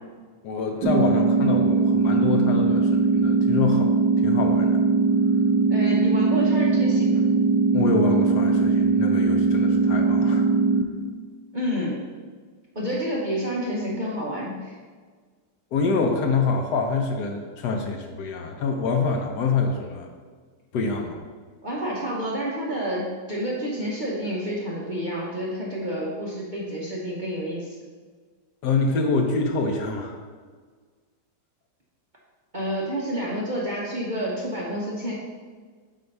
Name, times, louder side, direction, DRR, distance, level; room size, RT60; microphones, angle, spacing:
voice 1, 0.4-3.9 4.2-4.8 7.7-10.4 15.7-20.1 20.7-21.2 28.6-30.2, left 4 dB, 70° left, 3 dB, 1.2 m, -26 dB
sound 1, 0.8-10.8, right 4 dB, 75° right, 1.2 m, -20 dB
voice 2, 5.7-7.2 11.5-12.1 12.7-14.7 21.6-27.8 32.5-35.1, equal, 40° right, -5 dB, 0.7 m, -29 dB
7.7 x 2.8 x 5.3 m, 1.5 s
omnidirectional pair, 2.0 m